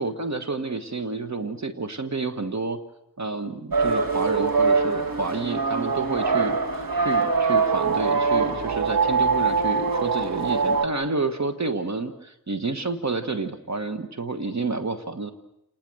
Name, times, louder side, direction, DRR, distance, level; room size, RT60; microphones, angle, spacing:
voice 1, 0.0-2.8 3.2-15.3, right 3 dB, 45° right, 10 dB, 1.5 m, -29 dB
sound 1, 3.7-10.9, right 4 dB, 65° right, 2.4 m, -23 dB
29.0 x 19.5 x 7.9 m, 0.81 s
wide cardioid pair, 100°, 37 cm